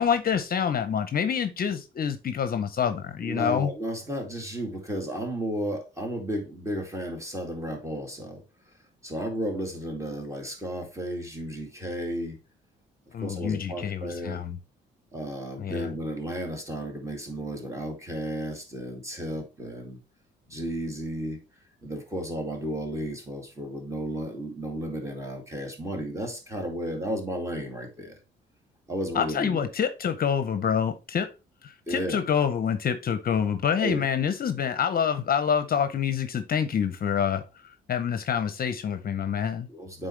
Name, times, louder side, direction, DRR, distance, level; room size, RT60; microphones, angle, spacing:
voice 1, 0.0-3.7 13.1-14.6 15.6-15.9 29.1-31.3 31.6-37.4 37.9-39.7, left 7 dB, 50° left, 0.7 m, -27 dB
voice 2, 3.2-8.4 9.0-12.4 13.2-14.4 15.1-20.0 20.5-21.4 21.8-28.2 28.9-29.9 31.9-32.2 33.8-34.1 39.7-40.1, right 1 dB, 15° right, 2.2 m, -33 dB
8.8 x 3.8 x 3.2 m
cardioid pair, 90°, 20 cm